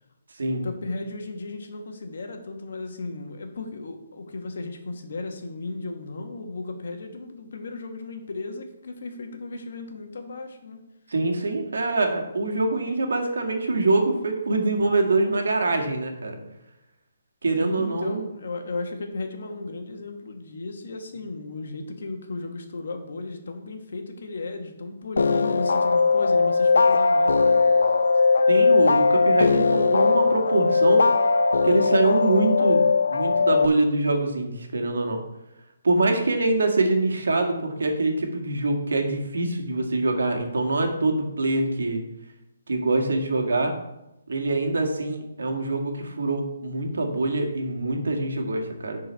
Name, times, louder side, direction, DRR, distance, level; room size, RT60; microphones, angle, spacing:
voice 1, 0.6-10.9 17.6-27.6, left 3 dB, 55° left, 4 dB, 1.4 m, -35 dB
voice 2, 11.1-16.4 17.4-18.2 28.5-31.1 31.6-32.8 33.1-35.2 35.8-42.0 42.7-43.7 44.3-49.0, right 2 dB, 90° right, 3 dB, 1.9 m, -24 dB
sound 1, 25.2-33.7, left 4 dB, 85° left, 0.5 m, -19 dB
10.5 x 4.5 x 4.6 m, 0.90 s
hypercardioid pair, 175°, 0 cm